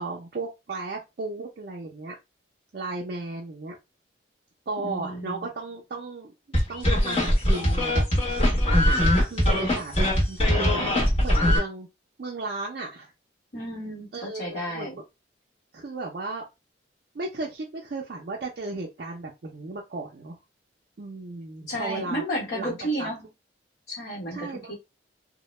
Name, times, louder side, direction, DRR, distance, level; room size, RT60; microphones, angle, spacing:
voice 1, 0.0-2.2 2.7-3.8 4.7-6.3 6.7-8.6 9.1-10.8 11.2-11.9 12.2-13.1 14.1-14.9 15.7-16.4 17.1-20.4 21.0-22.2 22.5-23.1 24.3-24.7, right 3 dB, 50° right, -2 dB, 0.4 m, -35 dB
voice 2, 4.8-5.5 13.5-15.0 21.7-23.3 23.9-24.8, equal, 60° left, -3 dB, 1.1 m, -32 dB
sound 1, 6.5-11.6, left 1 dB, 30° left, 0.9 m, -21 dB
2.1 x 2.0 x 3.0 m, 0.24 s
head